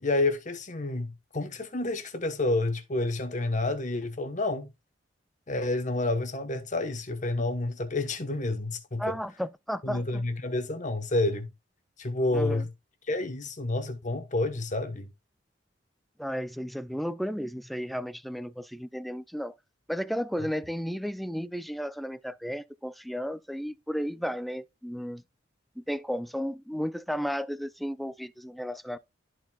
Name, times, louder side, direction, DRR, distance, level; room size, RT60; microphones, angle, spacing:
voice 1, 0.0-4.7 5.5-9.2 9.8-11.5 12.0-12.7 13.1-15.1, left 2 dB, 40° left, 1.1 m, -29 dB
voice 2, 9.0-10.2 12.3-12.6 16.2-19.5 19.9-25.2 25.8-29.0, equal, ahead, 0.3 m, -33 dB
13.0 x 4.5 x 2.3 m
head